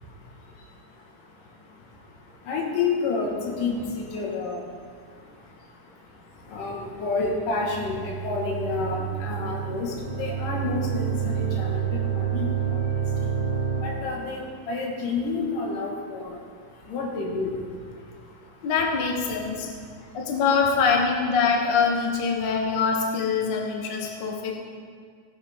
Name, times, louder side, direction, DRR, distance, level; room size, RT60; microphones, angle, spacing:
voice 1, 0.0-18.7 19.3-20.4 22.4-22.5 23.4-24.5, left 3 dB, 75° left, 0 dB, 3.1 m, -32 dB
sound 1, 7.5-14.3, right 8 dB, 45° right, 0.8 m, -29 dB
voice 2, 18.6-19.7 20.1-24.5, left 5 dB, 55° left, 1 dB, 1.3 m, -24 dB
15.5 x 9.7 x 3.6 m, 2.1 s
omnidirectional pair, 3.8 m